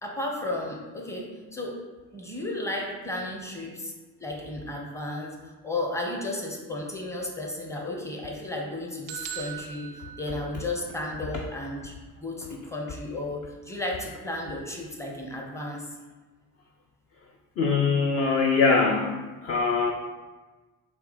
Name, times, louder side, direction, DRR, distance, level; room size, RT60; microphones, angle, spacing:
voice 1, 0.0-1.7 2.1-3.9 4.2-5.4 5.6-11.9 12.2-15.9, left 2 dB, 5° left, -1 dB, 0.8 m, -33 dB
sound 1, 9.1-11.0, right 8 dB, 45° right, 0.4 m, -40 dB
voice 2, 17.6-19.1 19.4-19.9, left 4 dB, 30° left, 2 dB, 0.4 m, -22 dB
4.1 x 2.2 x 4.1 m, 1.3 s
figure-of-eight pair, 55°, 48 cm